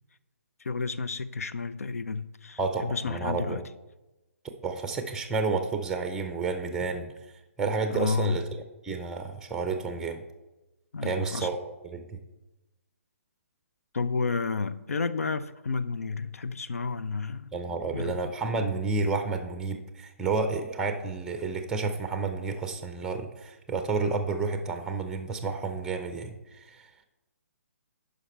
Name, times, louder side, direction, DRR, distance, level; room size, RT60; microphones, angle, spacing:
voice 1, 0.6-3.6 7.9-8.4 10.9-11.5 13.9-17.5 17.9-18.2, left 4 dB, 70° left, 0.5 m, -31 dB
voice 2, 2.6-3.6 4.6-7.1 7.6-8.4 8.8-10.2 11.0-12.0 17.5-26.9, right 4 dB, 5° right, 0.7 m, -30 dB
10.5 x 5.2 x 4.4 m
figure-of-eight pair, 135°, 8 cm